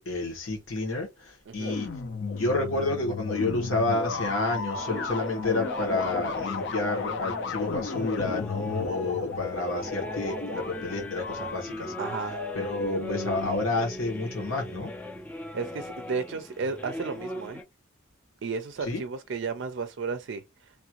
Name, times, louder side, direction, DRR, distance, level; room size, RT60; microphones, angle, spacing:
voice 1, 0.0-1.9 2.2-11.9 12.5-14.9 18.8-19.0, left 2 dB, 85° left, 1.4 m, -30 dB
voice 2, 1.5-1.8 12.0-12.5 15.5-17.6 18.4-20.4, right 4 dB, 65° right, 0.4 m, -33 dB
sound 1, 1.6-13.7, left 4 dB, 60° left, 0.5 m, -34 dB
sound 2, 4.8-17.6, equal, 10° left, 0.4 m, -40 dB
3.1 x 2.5 x 2.9 m
head